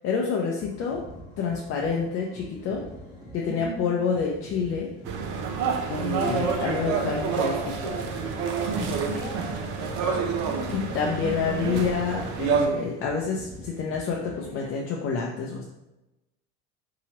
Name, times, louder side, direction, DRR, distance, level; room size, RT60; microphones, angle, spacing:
voice 1, 0.0-1.0 1.4-2.8 3.3-4.9 5.9-8.0 10.7-15.6, left 5 dB, 50° left, -1 dB, 0.6 m, -28 dB
sound 1, 0.6-14.7, right 1 dB, 15° right, 1.2 m, -46 dB
voice 2, 3.4-3.9 8.7-9.7 10.3-10.9, equal, 30° left, -1 dB, 1.0 m, -39 dB
sound 2, 5.1-12.7, right 6 dB, 65° right, 0.7 m, -28 dB
sound 3, 6.2-11.0, equal, 5° left, 0.7 m, -38 dB
4.7 x 2.9 x 3.0 m, 0.97 s
cardioid pair, 130°, 30 cm